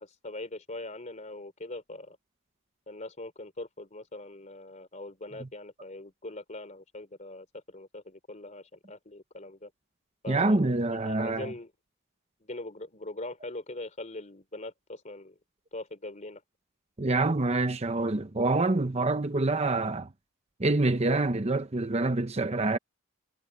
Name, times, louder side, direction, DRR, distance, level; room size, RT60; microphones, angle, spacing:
voice 1, 0.0-2.2 2.9-9.7 10.2-11.7 12.4-15.4 15.7-16.4, left 2 dB, 35° left, 3.4 m, -42 dB
voice 2, 10.3-11.5 17.0-20.1 20.6-22.8, right 2 dB, 30° right, 0.8 m, -26 dB
head